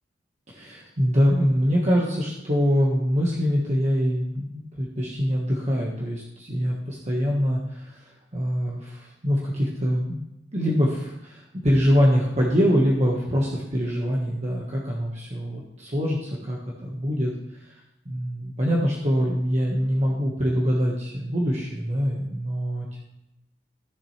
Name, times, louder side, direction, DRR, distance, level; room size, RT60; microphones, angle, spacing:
voice 1, 0.5-10.2 10.5-17.7 18.1-23.0, equal, 40° right, -4 dB, 1.5 m, -24 dB
14.5 x 7.3 x 3.3 m, 0.88 s
head